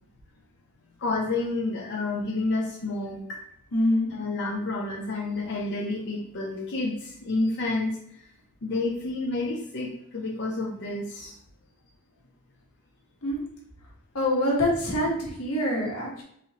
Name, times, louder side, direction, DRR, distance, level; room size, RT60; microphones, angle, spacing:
voice 1, 1.0-3.4 4.1-8.0 8.6-11.3, left 2 dB, 50° left, -2 dB, 0.6 m, -29 dB
voice 2, 3.7-4.1 13.2-13.4 14.1-16.2, left 1 dB, 90° left, -2 dB, 1.2 m, -25 dB
4.0 x 3.0 x 2.8 m, 0.71 s
head